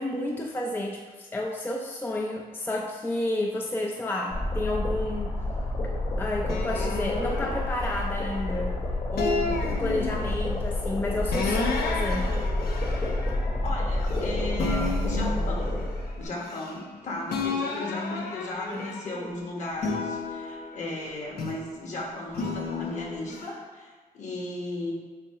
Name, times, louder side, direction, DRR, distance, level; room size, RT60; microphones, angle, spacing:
voice 1, 0.0-5.3 6.2-8.7 9.1-12.3 17.5-18.3 18.7-19.3, left 1 dB, 15° left, 1 dB, 0.4 m, -31 dB
sound 1, 4.3-16.2, left 1 dB, 30° left, 1.2 m, -29 dB
sound 2, 6.5-8.6 9.2-10.5 11.3-14.3 14.6-17.0 17.3-19.3 19.8-21.8 22.3-23.5, left 3 dB, 85° left, 0.9 m, -33 dB
voice 2, 13.6-15.8 16.2-24.9, left 2 dB, 50° left, -2 dB, 1.5 m, -36 dB
6.8 x 2.8 x 5.6 m, 1.5 s
cardioid pair, 135°, 16 cm